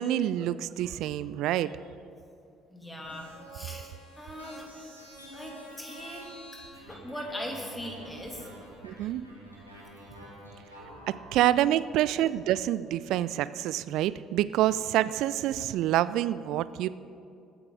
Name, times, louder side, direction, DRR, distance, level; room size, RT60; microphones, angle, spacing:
voice 1, 0.0-1.7 8.8-9.2 11.3-16.9, right 13 dB, 60° right, 16 dB, 0.4 m, -27 dB
voice 2, 2.7-8.5, equal, 10° left, 0 dB, 2.7 m, -41 dB
sound 1, 3.0-11.3, right 1 dB, 90° left, 2.0 m, -48 dB
21.0 x 9.5 x 3.8 m, 2.5 s
figure-of-eight pair, 50°, 0 cm